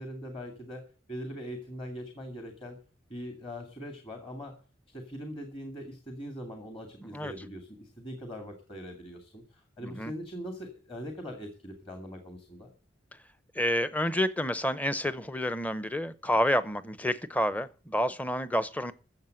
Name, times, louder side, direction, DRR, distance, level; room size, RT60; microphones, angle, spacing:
voice 1, 0.0-2.8 3.1-4.6 4.9-12.7, equal, 30° left, 2.3 m, -41 dB
voice 2, 9.8-10.1 13.5-18.9, equal, 10° left, 0.7 m, -29 dB
13.5 x 7.6 x 7.8 m
head